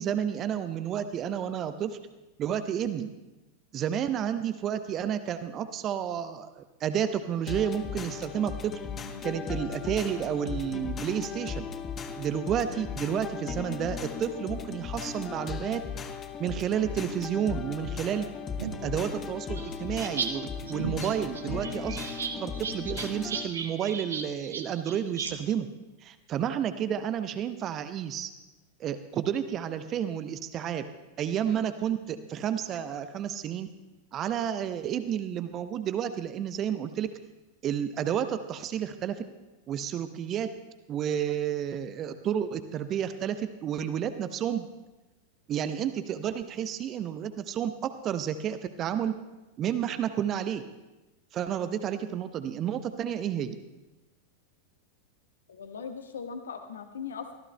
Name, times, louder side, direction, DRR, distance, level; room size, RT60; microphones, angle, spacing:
voice 1, 0.0-2.0 2.4-3.1 3.7-8.8 9.2-11.6 12.2-15.8 16.4-18.3 18.8-22.0 22.3-25.7 26.0-28.3 28.8-30.8 31.2-33.7 34.1-37.1 37.6-39.2 39.7-40.5 40.9-44.7 45.5-49.2 49.6-50.6 51.3-53.6, right 9 dB, 30° right, 10 dB, 0.7 m, -31 dB
sound 1, 7.5-23.5, left 6 dB, 25° left, 1.0 m, -37 dB
sound 2, 18.6-20.3 20.6-25.3, right 6 dB, 70° right, 1.0 m, -36 dB
voice 2, 55.5-57.4, left 6 dB, 65° left, 6 dB, 1.3 m, -39 dB
24.5 x 14.5 x 2.2 m, 1.1 s
figure-of-eight pair, 90°, 0 cm